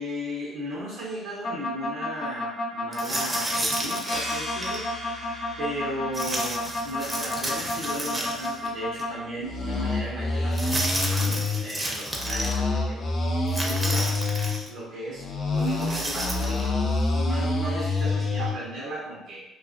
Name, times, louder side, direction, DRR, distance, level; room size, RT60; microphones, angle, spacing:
voice 1, 0.0-4.8 5.6-13.1 13.5-14.2 14.6-19.4, right 1 dB, 90° right, -8 dB, 0.7 m, -36 dB
sound 1, 1.4-9.1 9.4-11.6 12.1-14.6 15.2-18.5, left 2 dB, 55° left, 0.5 m, -27 dB
sound 2, 2.9-4.9 6.1-8.7 9.0-9.1 10.5-12.6 13.5-14.7 15.6-16.7, right 1 dB, 15° right, 0.5 m, -31 dB
sound 3, 4.0-9.2, left 1 dB, 85° left, 0.7 m, -40 dB
2.3 x 2.3 x 2.5 m, 0.87 s
cardioid pair, 85°, 0 cm